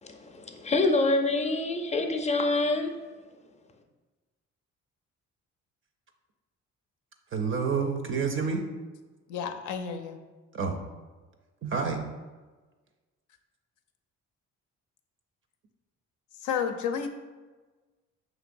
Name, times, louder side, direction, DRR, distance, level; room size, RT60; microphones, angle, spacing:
voice 1, 0.0-2.9, left 2 dB, 25° left, 0.5 m, -26 dB
voice 2, 7.3-8.6 10.5-10.8 11.6-12.0, right 5 dB, 45° right, 0.4 m, -28 dB
voice 3, 9.3-10.2 16.4-17.1, left 7 dB, 80° left, 0.5 m, -31 dB
5.2 x 3.0 x 2.5 m
cardioid pair, 90°, 30 cm